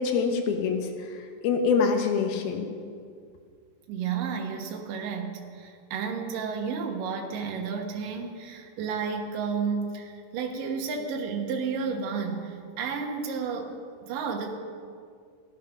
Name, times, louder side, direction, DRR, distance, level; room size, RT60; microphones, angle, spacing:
voice 1, 0.0-2.7, left 5 dB, 85° left, 5 dB, 3.1 m, -26 dB
voice 2, 3.9-13.7 14.0-14.5, right 5 dB, 70° right, 2 dB, 2.9 m, -32 dB
15.0 x 11.5 x 6.0 m, 2.2 s
omnidirectional pair, 4.2 m